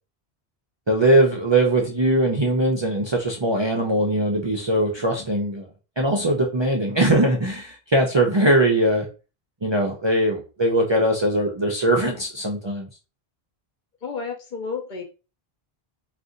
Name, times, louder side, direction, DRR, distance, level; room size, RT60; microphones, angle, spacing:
voice 1, 0.9-5.7 6.0-9.1 9.6-12.9, right 1 dB, 40° right, -1 dB, 0.4 m, -21 dB
voice 2, 14.0-15.0, left 5 dB, 55° left, 3 dB, 0.8 m, -31 dB
2.5 x 2.5 x 3.7 m, 0.32 s
omnidirectional pair, 1.0 m